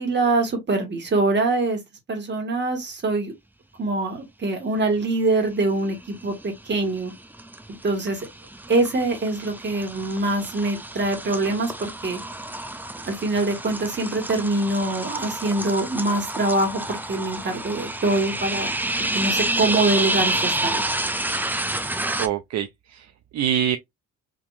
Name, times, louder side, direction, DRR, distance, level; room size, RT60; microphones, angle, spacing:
voice 1, 0.0-1.8 2.1-3.3 3.8-7.1 7.8-8.2 8.7-12.2 13.1-18.7 19.0-20.9, right 2 dB, 35° right, 1.7 m, -24 dB
sound 1, 5.9-6.4 6.8-22.3, right 1 dB, 5° right, 0.5 m, -29 dB
voice 2, 22.2-23.8, right 9 dB, 60° right, 0.5 m, -25 dB
3.6 x 2.9 x 2.6 m
cardioid pair, 90°, 30 cm